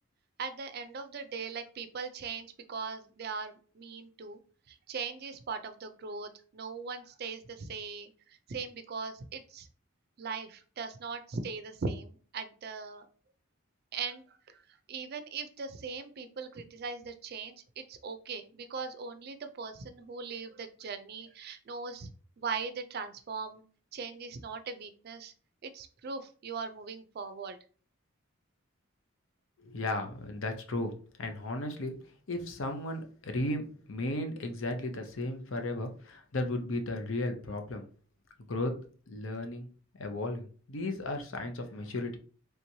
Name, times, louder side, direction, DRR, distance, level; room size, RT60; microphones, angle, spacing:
voice 1, 0.4-4.4 4.7-9.7 10.2-13.1 13.9-14.6 14.9-22.1 22.4-23.6 23.9-25.3 25.6-27.6, right 5 dB, 50° right, 9 dB, 0.4 m, -40 dB
voice 2, 29.6-30.9 31.2-32.0 32.3-37.8 38.5-38.7 39.1-39.7 40.0-42.2, left 1 dB, 70° left, 5 dB, 0.7 m, -35 dB
3.4 x 3.0 x 2.7 m, 0.41 s
head